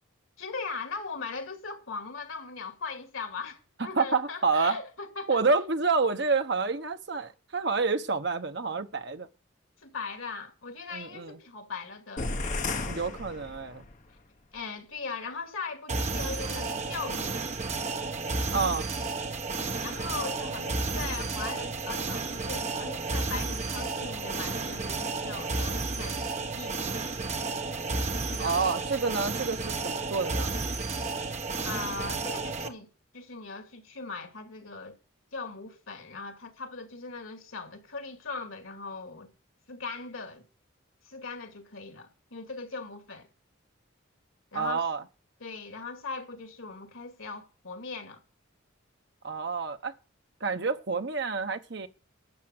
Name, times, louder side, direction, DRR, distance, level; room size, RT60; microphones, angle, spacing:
voice 1, 0.4-5.4 9.8-12.3 14.1-14.2 14.5-17.5 19.8-27.1 28.3-28.7 31.6-32.9 33.1-35.0 35.3-39.3 39.7-40.4 41.0-43.3 44.5-44.8 45.4-48.2, left 4 dB, 80° left, 2.4 m, -39 dB
voice 2, 4.0-4.8 5.3-9.3 10.9-11.4 12.9-13.8 18.5-18.9 28.4-30.5 44.5-45.0 49.2-49.9 50.4-51.9, right 4 dB, 55° right, 1.0 m, -28 dB
sound 1, 12.2-14.0, left 3 dB, 40° left, 1.2 m, -33 dB
sound 2, 15.9-32.7, right 3 dB, 35° right, 1.2 m, -32 dB
12.0 x 7.6 x 6.3 m
head